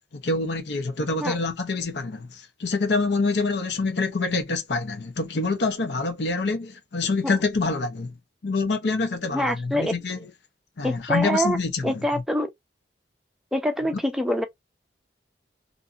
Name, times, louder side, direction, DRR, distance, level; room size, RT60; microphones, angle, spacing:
voice 1, 0.1-8.2 8.4-10.2 10.8-12.0, left 3 dB, 70° left, 0.7 m, -26 dB
voice 2, 9.3-9.9 10.8-11.6 11.8-12.5 13.5-14.5, equal, ahead, 0.5 m, -25 dB
2.6 x 2.6 x 2.4 m
head